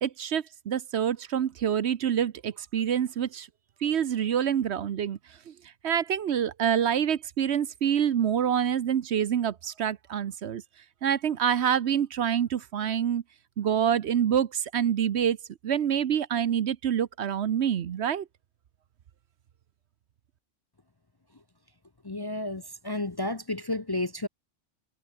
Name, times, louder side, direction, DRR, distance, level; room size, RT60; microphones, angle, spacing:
voice 1, 0.0-3.5 3.8-5.2 5.5-5.6 5.8-10.6 11.0-13.2 13.6-15.4 15.6-18.3, right 9 dB, 65° right, 1.0 m, -26 dB
voice 2, 22.0-24.3, left 2 dB, 25° left, 0.7 m, -31 dB
omnidirectional pair, 1.3 m